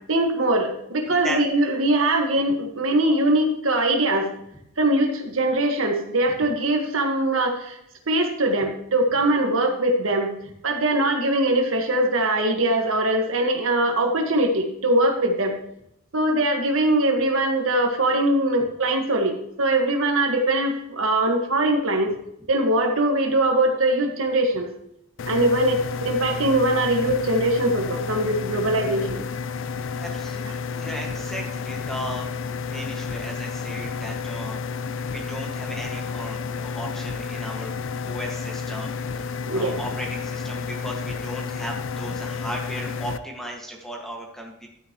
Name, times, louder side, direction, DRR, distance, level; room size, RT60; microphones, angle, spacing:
voice 1, 0.1-4.3 4.8-7.8 8.1-10.3 10.6-15.5 16.1-22.1 22.5-24.7 25.3-29.2 39.5-39.8, right 1 dB, 75° right, 3 dB, 1.6 m, -22 dB
voice 2, 1.0-1.4 29.6-32.3 32.6-34.6 35.1-37.7 38.0-44.7, equal, ahead, -1 dB, 1.8 m, -36 dB
sound 1, 25.2-43.2, left 5 dB, 65° left, 0.5 m, -31 dB
12.5 x 9.4 x 3.1 m, 0.77 s
head